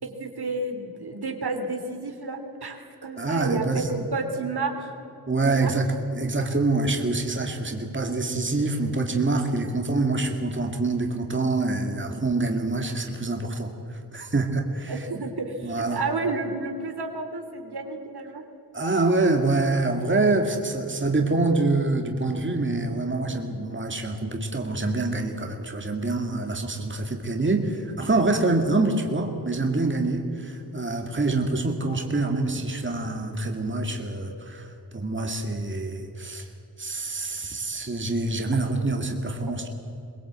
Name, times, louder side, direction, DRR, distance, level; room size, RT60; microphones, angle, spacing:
voice 1, 0.0-4.7 5.5-5.7 14.9-18.4, right 3 dB, 75° right, 4 dB, 2.9 m, -31 dB
voice 2, 3.2-4.0 5.3-15.1 15.6-16.0 18.7-34.7 34.9-36.5 36.8-39.7, right 2 dB, 30° right, 3 dB, 2.2 m, -26 dB
22.5 x 20.5 x 8.3 m, 2.8 s
wide cardioid pair, 110°, 39 cm